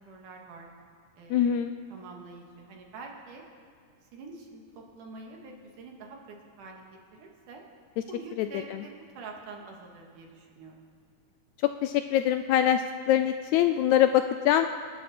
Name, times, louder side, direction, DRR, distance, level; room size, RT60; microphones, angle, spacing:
voice 1, 0.1-0.7 1.2-1.6 1.9-3.4 4.1-6.8 7.1-7.6 8.1-10.9, right 3 dB, 80° right, 1 dB, 3.3 m, -46 dB
voice 2, 1.3-1.7 8.4-8.8 11.8-14.7, left 11 dB, 80° left, 9 dB, 1.7 m, -24 dB
27.0 x 12.0 x 4.2 m, 2.1 s
omnidirectional pair, 3.7 m